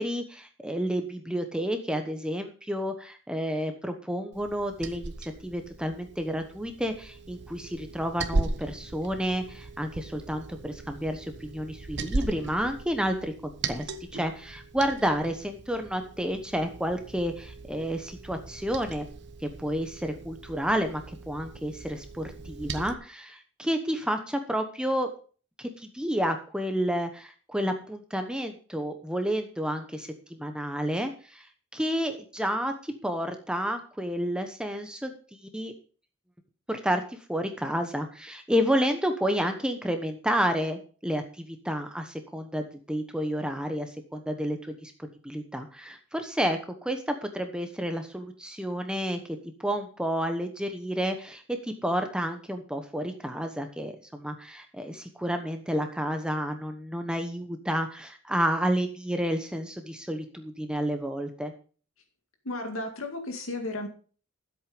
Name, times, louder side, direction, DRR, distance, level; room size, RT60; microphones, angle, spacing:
voice 1, 0.0-19.1 19.4-25.1 25.6-35.7 36.7-49.2 49.6-61.5, equal, 5° right, 6 dB, 1.1 m, -30 dB
Liquid, 4.3-22.9, right 3 dB, 60° right, 1.1 m, -38 dB
voice 2, 62.4-63.9, left 2 dB, 80° left, 4 dB, 2.2 m, -34 dB
14.0 x 8.1 x 5.2 m, 0.40 s
head